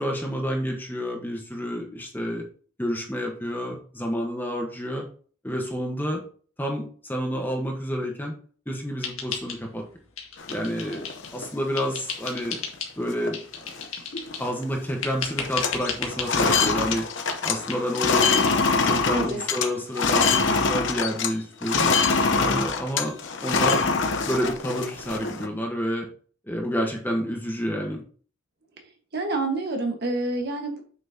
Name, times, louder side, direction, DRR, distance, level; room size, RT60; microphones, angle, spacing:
voice 1, 0.0-2.4 2.8-5.0 5.4-6.2 6.6-8.3 8.7-9.8 10.5-12.6 13.0-13.7 14.4-17.0 17.4-18.5 18.8-21.9 22.3-23.2 23.4-23.9 24.3-26.1 26.5-28.0, equal, 10° left, 1 dB, 1.2 m, -29 dB
sound 1, 9.0-9.9 10.2-11.4 11.8-13.0 13.3-14.5 15.0-16.3 16.9-17.0 17.3-17.4 17.7-17.8 18.1-18.2 18.5-18.6 18.9-19.0 19.2-19.3 19.6-19.7, left 6 dB, 85° left, 1.9 m, -34 dB
sound 2, 10.4-11.5 11.9-12.0 12.3-12.6 13.1-13.3 13.6-14.6 14.9-15.1 15.4-21.3 21.6-25.5, left 4 dB, 60° left, 0.9 m, -24 dB
voice 2, 19.1-19.4 29.1-30.8, right 2 dB, 50° right, 3 dB, 1.6 m, -27 dB
8.0 x 6.0 x 2.9 m, 0.42 s
head